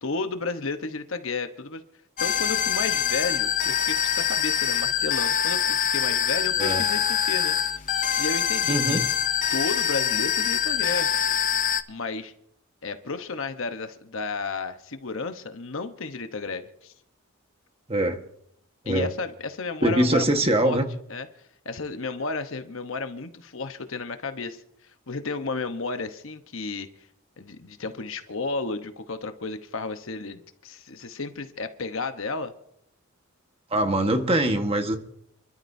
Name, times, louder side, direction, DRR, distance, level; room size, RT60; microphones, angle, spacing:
voice 1, 0.0-1.8 2.2-7.6 8.2-9.0 9.5-11.2 11.9-12.3 12.8-16.9 18.9-20.3 20.6-20.8 21.1-21.3 21.6-24.6 25.1-26.9 27.4-32.5, left 3 dB, 60° left, 8 dB, 1.1 m, -32 dB
sound 1, 2.2-11.8, left 9 dB, 35° left, 0.6 m, -24 dB
voice 2, 8.7-9.0 17.9-18.2 18.8-19.1 19.8-20.8 33.7-35.0, right 1 dB, 25° right, 5 dB, 1.4 m, -23 dB
29.0 x 12.5 x 2.7 m, 0.72 s
head